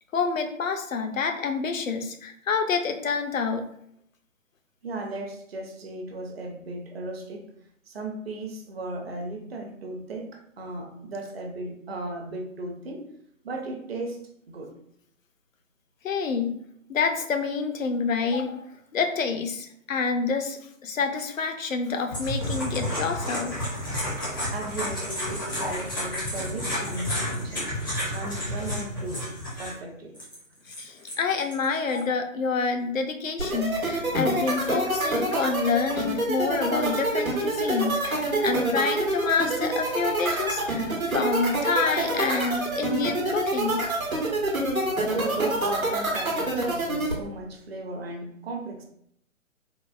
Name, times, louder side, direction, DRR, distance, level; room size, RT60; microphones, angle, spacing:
voice 1, 0.1-3.7 16.0-16.6 16.9-18.6 18.9-23.6 26.7-26.9 30.8-43.8, left 5 dB, 75° left, 6 dB, 0.6 m, -28 dB
voice 2, 4.8-7.4 7.9-13.1 13.4-14.7 24.5-27.7 28.1-29.3 29.6-30.1 44.7-48.8, right 2 dB, 50° right, 2 dB, 0.6 m, -36 dB
sound 1, 22.1-29.7 30.1-32.0, equal, 15° left, 0.4 m, -31 dB
sound 2, 33.4-47.1, right 2 dB, 90° right, 1.0 m, -26 dB
3.8 x 2.1 x 2.3 m, 0.71 s
figure-of-eight pair, 130°, 40 cm